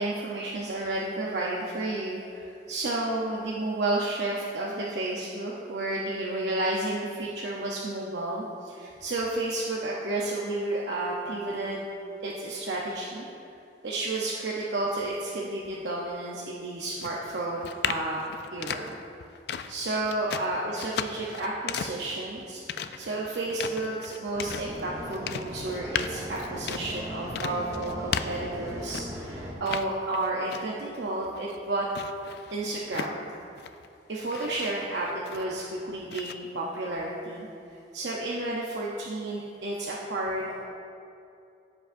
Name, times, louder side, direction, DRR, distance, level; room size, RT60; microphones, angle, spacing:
voice 1, 0.0-11.9 12.2-13.3 13.8-18.2 18.5-19.0 19.7-31.9 32.5-33.3 34.1-37.5 37.9-40.6, right 2 dB, 75° right, -4 dB, 0.7 m, -31 dB
sound 1, 17.0-29.3 29.6-30.9 31.2-33.9 34.2-35.7 36.1-36.3, left 7 dB, 65° left, 0.3 m, -36 dB
sound 2, 24.3-29.5, equal, 20° right, 0.9 m, -38 dB
15.0 x 5.1 x 2.6 m, 2.6 s
head